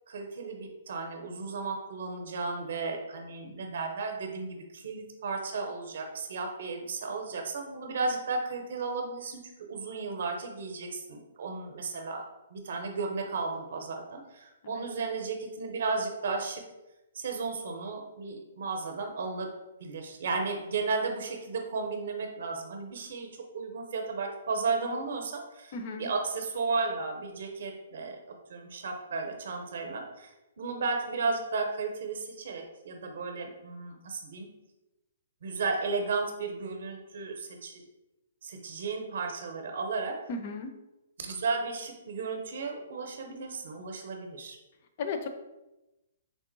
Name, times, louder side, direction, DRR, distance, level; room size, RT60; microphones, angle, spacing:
voice 1, 0.1-9.4 9.7-12.3 12.5-16.6 17.1-19.5 19.8-23.3 23.5-30.3 30.6-34.5 35.4-37.8 38.4-40.2 41.2-44.6, right 4 dB, 50° right, 3 dB, 0.6 m, -34 dB
voice 2, 25.7-26.1 40.3-40.7 45.0-45.3, left 4 dB, 30° left, 7 dB, 0.4 m, -34 dB
3.7 x 2.9 x 3.8 m, 0.99 s
hypercardioid pair, 175°, 0 cm